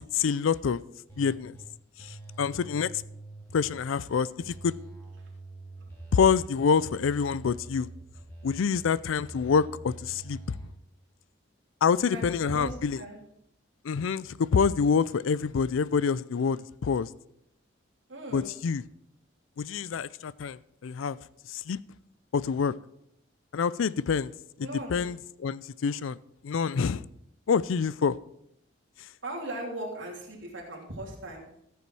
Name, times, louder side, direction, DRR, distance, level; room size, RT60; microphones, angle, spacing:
voice 1, 0.1-0.8 1.2-1.6 2.0-2.9 3.5-4.7 6.1-7.9 8.4-10.4 11.8-13.0 13.8-17.1 18.3-18.8 19.6-21.2 21.5-21.8 22.3-22.7 23.5-24.3 24.6-26.2 26.4-27.0 27.5-28.2, left 6 dB, 90° left, 0.4 m, -26 dB
sound 1, 1.1-1.7 2.0-4.0 4.4-6.5 6.8-8.8 9.2-10.7, right 3 dB, 15° left, 2.7 m, -45 dB
voice 2, 12.5-13.2 18.1-18.5 24.6-25.0 29.2-31.4, right 1 dB, 75° right, 3.1 m, -38 dB
14.0 x 7.0 x 4.8 m
head